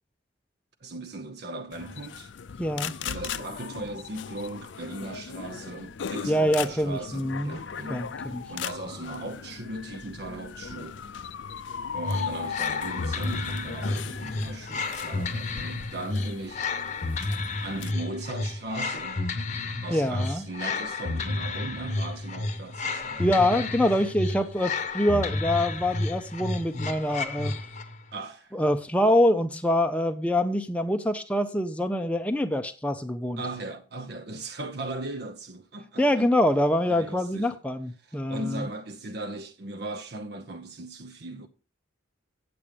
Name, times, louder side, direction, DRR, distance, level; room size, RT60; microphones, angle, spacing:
voice 1, 0.8-2.3 3.0-11.0 11.9-16.6 17.6-19.2 19.8-23.6 28.1-28.6 33.4-36.3 36.9-37.5 38.0-41.5, right 2 dB, 55° right, 0.8 m, -38 dB
sound 1, 1.7-17.9, left 7 dB, 70° left, 0.5 m, -38 dB
voice 2, 2.6-2.9 6.3-7.6 7.9-8.4 19.9-20.5 23.2-27.6 28.5-33.4 36.0-38.7, left 1 dB, 5° left, 0.5 m, -25 dB
sound 2, 12.0-28.0, left 3 dB, 35° left, 0.9 m, -31 dB
8.6 x 7.7 x 5.0 m
head